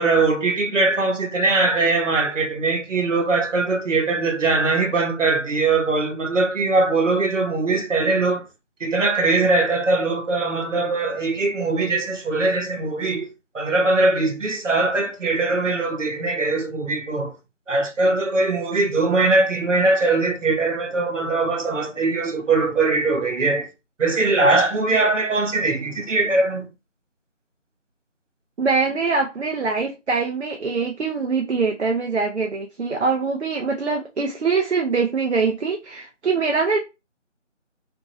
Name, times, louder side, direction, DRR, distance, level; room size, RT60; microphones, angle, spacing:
voice 1, 0.0-8.5 8.8-13.3 13.5-17.3 17.7-23.7 24.0-26.7, right 3 dB, 80° right, 1.0 m, -21 dB
voice 2, 28.6-36.8, right 4 dB, 60° right, 0.5 m, -23 dB
2.9 x 2.6 x 2.6 m
figure-of-eight pair, 175°, 37 cm